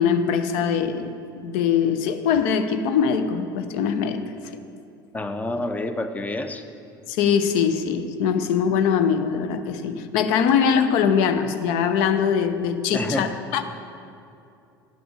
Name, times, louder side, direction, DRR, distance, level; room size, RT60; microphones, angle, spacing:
voice 1, 0.0-4.6 7.1-13.6, left 7 dB, 55° left, 9 dB, 0.6 m, -22 dB
voice 2, 5.1-6.6 12.9-13.3, left 2 dB, 15° left, 8 dB, 0.6 m, -28 dB
10.0 x 6.0 x 6.5 m, 2.6 s
figure-of-eight pair, 70°, 12 cm